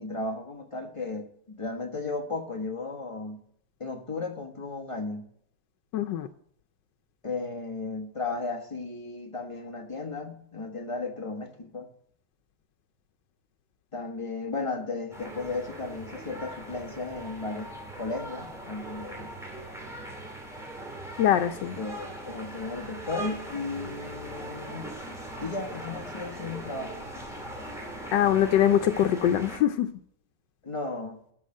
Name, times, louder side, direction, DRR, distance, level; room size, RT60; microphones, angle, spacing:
voice 1, 0.0-3.4 3.8-5.2 7.2-11.9 13.9-17.7 18.0-19.3 21.7-24.9 25.4-27.1 30.6-31.2, left 3 dB, 20° left, 1.2 m, -35 dB
voice 2, 5.9-6.3 21.2-21.7 28.1-29.9, left 10 dB, 85° left, 1.3 m, -23 dB
sound 1, 15.1-29.6, right 1 dB, ahead, 2.3 m, -40 dB
12.5 x 4.9 x 7.5 m
omnidirectional pair, 1.9 m